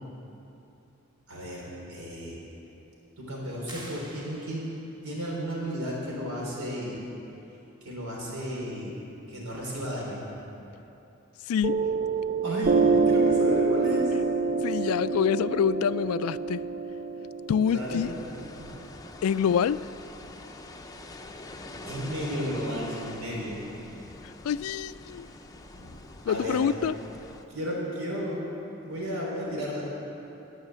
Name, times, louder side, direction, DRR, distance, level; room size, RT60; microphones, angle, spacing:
voice 1, 1.3-2.4 3.2-4.6 5.0-7.0 7.8-9.0 9.3-10.2 12.4-14.1 17.6-18.0 18.6-18.9 21.8-23.6 25.7-25.9 26.2-26.6 27.5-28.4 28.8-29.8, equal, 85° right, 3.7 m, -33 dB
sound 1, 3.7-5.0, right 1 dB, 20° right, 1.2 m, -46 dB
voice 2, 11.5-11.9 14.6-16.7 17.5-18.1 19.2-19.9 24.2-25.3 26.3-26.9, left 7 dB, 85° left, 0.3 m, -26 dB
Piano, 11.6-18.7, right 4 dB, 35° right, 0.3 m, -26 dB
sound 2, 17.6-27.4, left 2 dB, 15° left, 0.6 m, -44 dB
18.5 x 6.4 x 7.4 m
head